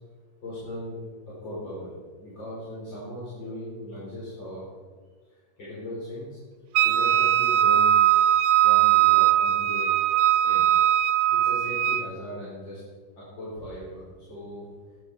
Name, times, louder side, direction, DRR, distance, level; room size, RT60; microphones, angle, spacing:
voice 1, 0.4-1.0 1.4-4.6 5.6-6.4 6.8-7.9 8.6-9.9 10.4-10.7 10.9-11.0 11.3-12.8 13.4-14.7, equal, 90° left, -8 dB, 5.3 m, -38 dB
Wind instrument woodwind instrument, 6.7-12.1, right 11 dB, 90° right, 1.3 m, -20 dB
15.5 x 11.5 x 4.8 m, 1.5 s
omnidirectional pair, 2.0 m